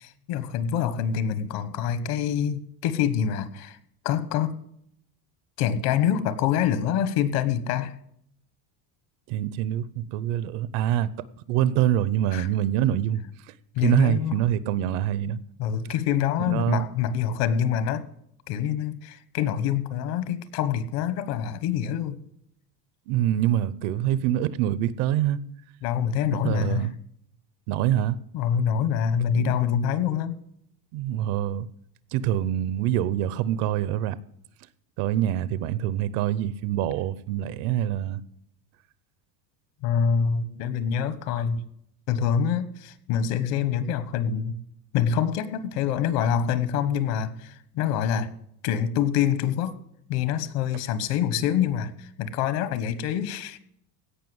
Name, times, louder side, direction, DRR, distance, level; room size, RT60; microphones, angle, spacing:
voice 1, 0.0-3.8 4.0-4.6 5.6-7.9 12.3-12.5 13.7-14.4 15.6-18.0 18.5-22.2 25.8-26.9 28.3-30.4 39.8-41.6 42.1-44.6 44.9-48.3 48.6-49.8 50.1-53.6, left 8 dB, 55° left, 1.2 m, -26 dB
voice 2, 9.3-11.1 11.5-13.5 13.8-15.4 16.4-16.9 23.1-25.4 26.3-26.9 27.7-28.2 29.3-29.6 30.9-31.7 32.1-34.2 35.0-38.2, right 11 dB, 60° right, 0.7 m, -25 dB
16.5 x 5.8 x 7.9 m
cardioid pair, 170°, 46 cm